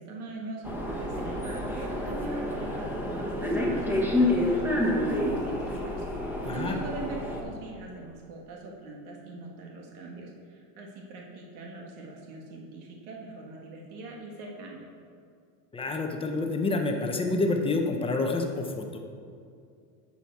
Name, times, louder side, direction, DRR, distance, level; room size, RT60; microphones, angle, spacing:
voice 1, 0.0-14.8, right 2 dB, 75° right, -1 dB, 1.8 m, -42 dB
sound 1, 0.6-7.4, left 1 dB, 5° right, 1.3 m, -28 dB
voice 2, 6.4-6.8 15.7-19.0, left 3 dB, 10° left, 3 dB, 0.7 m, -28 dB
11.5 x 7.1 x 4.7 m, 2.3 s
supercardioid pair, 145°, 45 cm